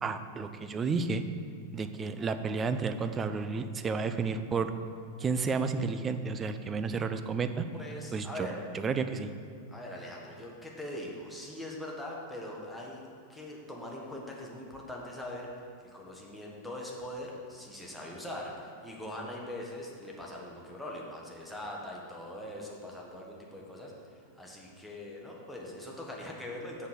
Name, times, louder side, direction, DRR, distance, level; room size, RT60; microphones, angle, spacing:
voice 1, 0.0-1.2 1.7-4.7 5.2-7.7 8.1-8.5 8.7-9.3, right 4 dB, 20° right, 9 dB, 0.5 m, -31 dB
voice 2, 7.7-8.7 9.7-26.9, left 1 dB, 5° left, -3 dB, 1.4 m, -42 dB
6.7 x 4.7 x 6.7 m, 2.4 s
figure-of-eight pair, 90°, 0 cm